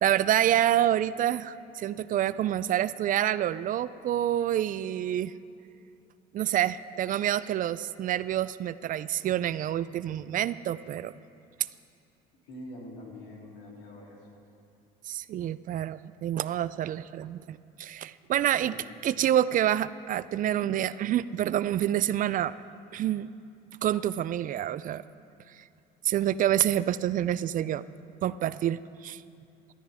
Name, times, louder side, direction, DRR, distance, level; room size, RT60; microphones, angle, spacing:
voice 1, 0.0-5.3 6.3-11.1 15.0-18.8 19.0-22.5 22.9-23.3 23.8-25.0 26.0-27.8 28.2-29.2, right 11 dB, 50° right, 17 dB, 0.4 m, -27 dB
voice 2, 12.4-14.2 18.6-18.9, left 1 dB, 80° left, -2 dB, 3.1 m, -45 dB
17.5 x 13.0 x 3.5 m, 2.5 s
supercardioid pair, 90°, 18 cm